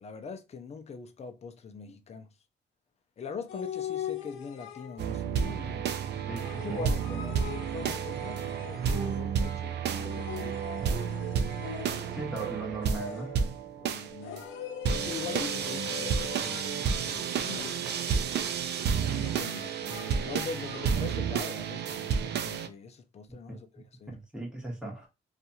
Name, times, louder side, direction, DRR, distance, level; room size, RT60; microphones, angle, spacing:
voice 1, 0.0-2.3 3.2-5.9 6.6-10.7 13.8-14.5 14.8-17.5 19.0-24.2, left 5 dB, 35° left, 0.5 m, -42 dB
sound 1, 3.5-5.2 6.4-9.5 9.9-12.3 12.8-13.5 14.2-17.0 17.4-20.9, left 9 dB, 85° left, 0.4 m, -42 dB
sound 2, 5.0-22.7, right 7 dB, 60° right, 0.4 m, -31 dB
voice 2, 6.3-6.9 12.1-13.4 23.5-25.1, right 3 dB, 5° right, 1.3 m, -38 dB
2.6 x 2.4 x 2.7 m
cardioid pair, 90°, 20 cm